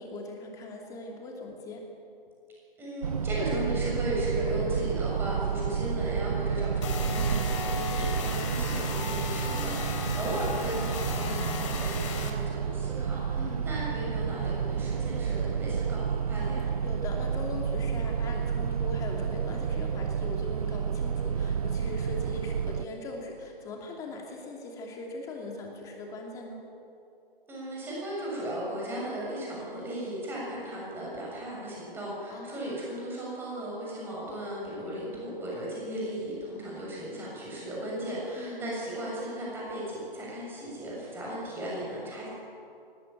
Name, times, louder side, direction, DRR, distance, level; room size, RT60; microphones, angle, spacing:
voice 1, 0.0-1.9 10.1-10.4 13.4-13.7 16.8-26.7 32.3-32.8 38.4-38.7, left 2 dB, 10° left, 1 dB, 2.7 m, -40 dB
voice 2, 2.8-16.7 27.5-42.3, equal, 5° right, -5 dB, 6.8 m, -36 dB
sound 1, 3.0-22.9, right 7 dB, 40° right, 0.6 m, -30 dB
sound 2, 6.8-12.3, left 5 dB, 30° left, 3.1 m, -35 dB
21.0 x 18.5 x 9.1 m, 2.6 s
figure-of-eight pair, 150°, 30 cm